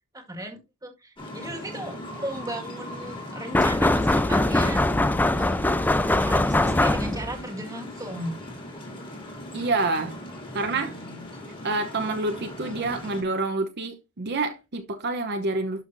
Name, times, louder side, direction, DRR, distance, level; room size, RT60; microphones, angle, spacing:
voice 1, 0.1-4.9 5.2-5.5 6.1-8.4 10.7-11.2, right 1 dB, 15° right, 1.8 m, -36 dB
sound 1, 1.2-13.2, left 1 dB, 25° left, 2.6 m, -39 dB
sound 2, 3.5-7.4, left 1 dB, 10° left, 0.3 m, -22 dB
voice 2, 9.5-10.2 10.5-11.0 11.6-15.8, right 3 dB, 50° right, 0.9 m, -27 dB
12.0 x 5.6 x 2.6 m
head